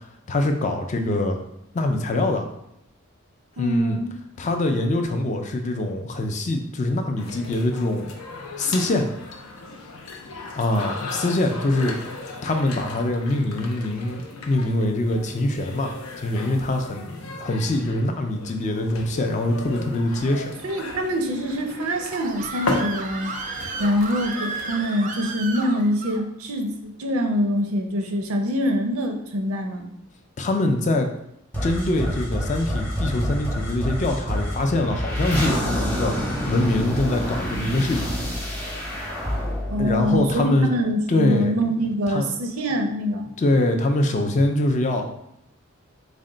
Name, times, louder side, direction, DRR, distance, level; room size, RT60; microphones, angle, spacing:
voice 1, 0.3-1.4 1.7-2.5 3.6-4.0 4.4-8.1 8.6-9.1 10.5-11.9 12.4-15.9 16.2-20.5 30.4-31.1 31.6-36.1 36.5-38.1 39.8-40.7 41.1-41.5 42.1-42.3 43.4-45.1, left 1 dB, 35° left, 4 dB, 0.4 m, -23 dB
voice 2, 3.6-4.1 20.6-23.3 23.8-29.9 39.7-43.3, equal, 85° right, 4 dB, 0.6 m, -24 dB
sound 1, 7.2-25.6, left 3 dB, 85° left, 0.6 m, -36 dB
Screaming, 21.7-26.2, right 4 dB, 35° right, 0.3 m, -33 dB
sound 2, 31.5-40.9, equal, 10° left, 0.7 m, -27 dB
4.1 x 2.1 x 3.7 m, 0.78 s
head